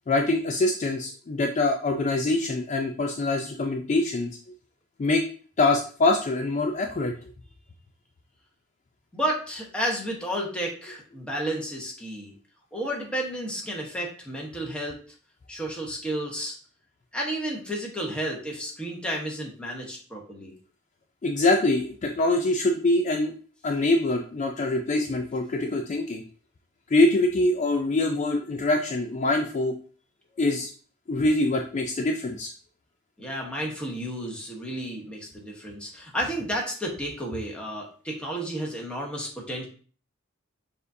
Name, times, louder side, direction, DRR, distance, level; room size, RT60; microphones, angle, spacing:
voice 1, 0.1-4.3 5.0-5.2 5.6-7.1 21.2-23.3 23.6-26.2 26.9-29.7 30.4-30.7 31.1-32.5, left 2 dB, 35° left, 3 dB, 0.4 m, -24 dB
voice 2, 9.1-12.3 12.7-15.0 15.5-16.6 17.1-20.5 33.2-39.6, equal, 5° left, -2 dB, 1.0 m, -32 dB
6.5 x 2.5 x 2.6 m, 0.41 s
head